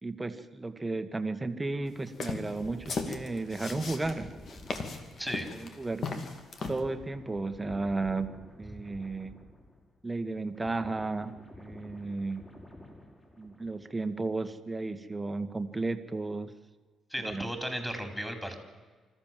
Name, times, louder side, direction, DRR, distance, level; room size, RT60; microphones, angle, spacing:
voice 1, 0.0-4.3 5.6-6.1 6.7-8.3 8.6-9.3 10.0-12.4 13.4-16.5 17.2-17.5, right 3 dB, 15° right, 9 dB, 1.6 m, -34 dB
sound 1, 2.1-6.8, left 4 dB, 55° left, 2.6 m, -37 dB
sound 2, 2.5-10.0 10.3-14.0 14.3-14.6, left 1 dB, 25° left, 6.3 m, -51 dB
voice 2, 5.2-5.5 17.1-18.6, equal, ahead, 5 dB, 4.2 m, -35 dB
25.5 x 14.5 x 7.6 m, 1.4 s
cardioid pair, 90°, 0 cm